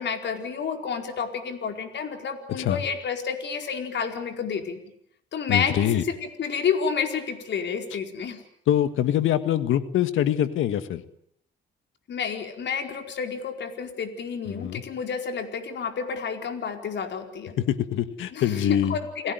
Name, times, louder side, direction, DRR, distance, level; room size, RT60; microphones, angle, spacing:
voice 1, 0.0-4.8 5.3-8.4 12.1-17.6 18.3-19.3, left 6 dB, 65° left, 6 dB, 4.7 m, -30 dB
voice 2, 5.5-6.0 8.7-11.0 14.5-14.8 17.6-19.0, left 11 dB, 85° left, 12 dB, 1.8 m, -24 dB
29.5 x 18.0 x 9.4 m, 0.72 s
cardioid pair, 90°, 20 cm